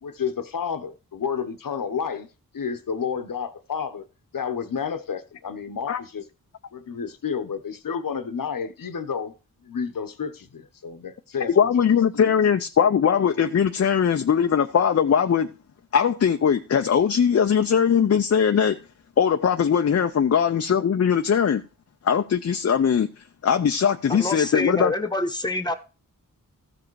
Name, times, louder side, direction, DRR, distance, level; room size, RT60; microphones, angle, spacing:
voice 1, 0.0-2.3 2.5-4.0 4.3-6.2 6.7-9.3 9.6-11.9 12.1-12.4, left 6 dB, 70° left, 1.0 m, -30 dB
voice 2, 11.6-15.5 15.9-18.8 19.2-21.6 22.0-23.1 23.4-24.9, left 7 dB, 45° left, 0.5 m, -20 dB
voice 3, 24.1-25.7, left 2 dB, 10° left, 1.2 m, -26 dB
14.0 x 5.0 x 4.7 m
wide cardioid pair, 70°, 35 cm